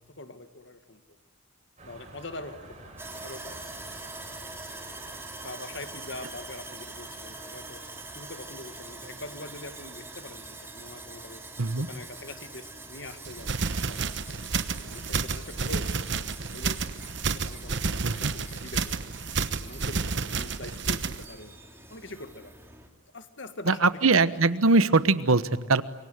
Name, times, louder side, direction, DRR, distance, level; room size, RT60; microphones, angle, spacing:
voice 1, 0.1-1.0 1.8-3.6 5.4-7.8 8.1-11.4 11.8-14.1 14.8-17.0 17.3-19.0 19.5-21.5 21.9-22.5 23.1-24.2, left 2 dB, 60° left, 9 dB, 1.9 m, -43 dB
sound 1, 1.8-15.2, right 2 dB, 35° right, 6.6 m, -53 dB
Sawing, 3.0-22.9, right 2 dB, 10° right, 3.0 m, -44 dB
sound 2, 13.3-21.2, right 4 dB, 55° right, 1.1 m, -30 dB
voice 2, 23.6-25.8, right 3 dB, 80° right, 14 dB, 1.1 m, -22 dB
27.0 x 23.5 x 9.3 m, 1.1 s
head